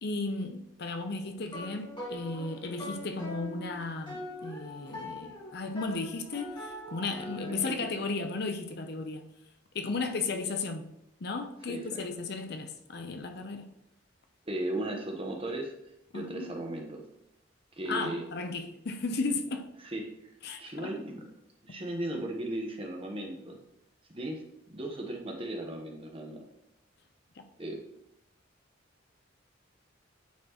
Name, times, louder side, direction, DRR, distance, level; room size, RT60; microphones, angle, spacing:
voice 1, 0.0-9.3 9.7-10.9 11.2-13.7 16.1-16.5 17.9-19.7 20.4-20.9 27.4-27.5, left 3 dB, 55° left, 0.6 m, -35 dB
sound 1, 1.0-7.8, left 1 dB, 25° left, 2.1 m, -43 dB
voice 2, 7.6-8.0 11.7-12.0 14.5-15.7 16.1-17.0 17.7-18.2 19.8-20.0 20.6-21.3 21.6-23.6 24.1-24.4 24.7-26.4 27.6-27.8, right 1 dB, 30° right, 1.0 m, -36 dB
9.3 x 4.3 x 3.0 m
head